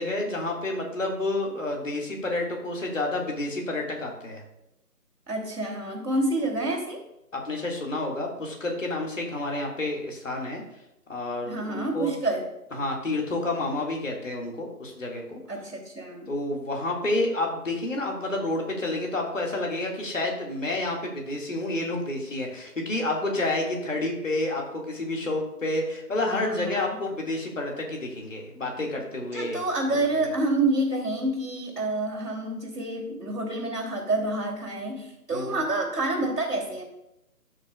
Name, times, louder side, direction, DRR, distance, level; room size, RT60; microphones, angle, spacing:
voice 1, 0.0-4.4 7.3-10.6 11.1-12.1 12.7-15.4 16.3-29.6 29.9-30.0 35.3-35.6, left 2 dB, 50° left, 0 dB, 2.0 m, -29 dB
voice 2, 5.3-7.0 11.4-12.5 15.5-16.3 26.3-27.0 29.3-36.8, right 2 dB, 75° right, 0 dB, 3.0 m, -28 dB
13.5 x 6.5 x 2.3 m, 0.84 s
figure-of-eight pair, 170°, 47 cm